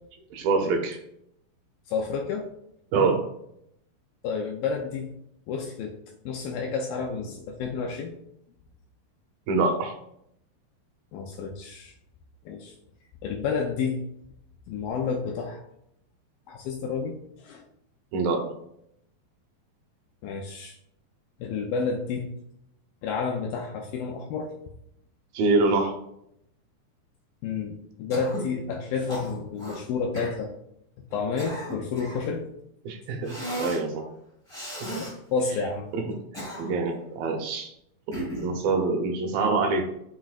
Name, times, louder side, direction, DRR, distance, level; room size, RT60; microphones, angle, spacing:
voice 1, 0.3-1.0 2.9-3.2 9.5-9.9 18.1-18.5 25.3-26.0 32.9-34.1 35.9-36.2 36.6-37.7 38.4-39.9, right 3 dB, 75° right, 3 dB, 2.3 m, -25 dB
voice 2, 1.9-2.5 4.2-5.2 5.5-6.0 6.3-8.1 11.1-11.9 12.5-12.7 13.2-14.1 14.7-15.6 16.5-17.6 20.2-20.8 21.4-22.3 23.0-24.5 27.4-30.5 31.0-32.4 34.9-35.9, left 5 dB, 80° left, 2 dB, 2.2 m, -30 dB
Cough, 28.1-28.5 29.1-29.8 30.1-30.4 31.1-32.3 33.2-33.8 34.5-35.1 36.1-36.9 38.1-38.6, equal, 10° left, 1.4 m, -35 dB
10.0 x 6.1 x 2.5 m, 0.76 s
omnidirectional pair, 4.8 m